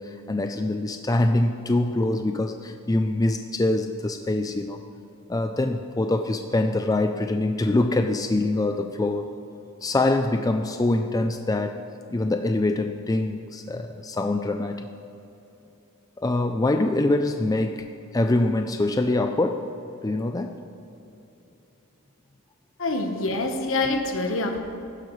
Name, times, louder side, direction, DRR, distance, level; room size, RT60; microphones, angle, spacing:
voice 1, 0.0-4.8 5.3-9.3 9.8-11.8 12.1-14.9 16.2-19.7 20.0-20.5, left 2 dB, 15° left, 6 dB, 0.4 m, -24 dB
voice 2, 22.8-24.6, left 2 dB, 65° left, 5 dB, 1.2 m, -26 dB
15.5 x 11.5 x 3.2 m, 2.9 s
head